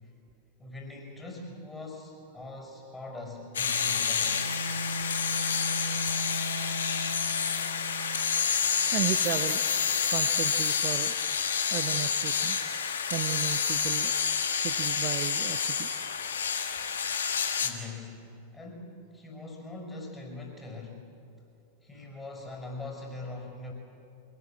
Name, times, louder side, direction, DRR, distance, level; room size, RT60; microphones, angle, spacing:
voice 1, 0.6-4.4 17.6-21.1 21.8-23.7, left 2 dB, 10° left, 1 dB, 5.5 m, -42 dB
sound 1, 3.5-17.7, left 6 dB, 65° left, 1.7 m, -28 dB
Bowed string instrument, 4.2-8.5, equal, 85° left, 3.6 m, -37 dB
voice 2, 8.9-9.6 10.1-11.1 11.7-12.6 13.1-14.1 14.5-15.9, right 14 dB, 40° right, 11 dB, 0.7 m, -34 dB
25.0 x 18.5 x 7.6 m, 2.6 s
figure-of-eight pair, 90°, 0 cm